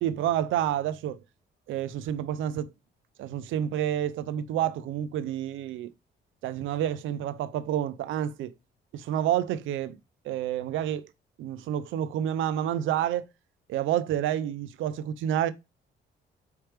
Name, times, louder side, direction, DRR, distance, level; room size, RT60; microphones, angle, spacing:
voice 1, 0.0-1.2 1.7-2.7 3.2-5.9 6.4-8.5 8.9-10.0 10.2-11.1 11.4-13.3 13.7-15.5, right 11 dB, 80° right, 0.5 m, -29 dB
4.4 x 3.3 x 3.2 m
cardioid pair, 90°, 20 cm